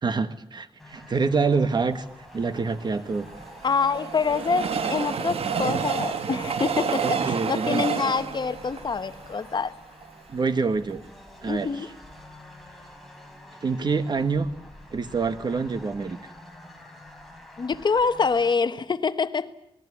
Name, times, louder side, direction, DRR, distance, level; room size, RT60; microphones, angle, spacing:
voice 1, 0.0-2.0 2.3-3.3 7.0-7.8 10.3-11.0 11.4-11.7 13.6-14.5 14.9-16.2, right 4 dB, 45° right, 11 dB, 1.5 m, -26 dB
sound 1, 0.8-18.6, left 1 dB, ahead, 4.5 m, -47 dB
Train, 2.8-10.1 10.6-10.7 10.9-11.0, right 6 dB, 75° right, 1.4 m, -29 dB
voice 2, 3.6-9.7 11.4-11.9 17.6-19.5, left 5 dB, 45° left, 11 dB, 1.1 m, -26 dB
26.5 x 20.0 x 8.5 m, 0.81 s
wide cardioid pair, 125°, 10 cm